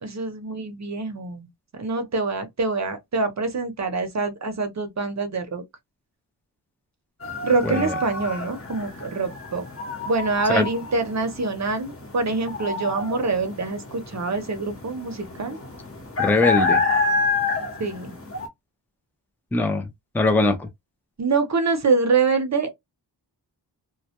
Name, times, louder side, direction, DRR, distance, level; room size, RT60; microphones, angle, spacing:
voice 1, 0.0-1.5 1.7-5.6 7.4-9.7 10.0-15.6 17.8-18.2 21.2-22.7, right 4 dB, 40° right, 0.6 m, -25 dB
sound 1, 7.2-18.5, left 3 dB, 30° left, 0.8 m, -28 dB
voice 2, 7.6-7.9 10.5-10.7 16.2-16.8 19.5-19.9 20.1-20.7, left 3 dB, 5° left, 0.4 m, -21 dB
2.2 x 2.1 x 2.8 m
wide cardioid pair, 95°, 42 cm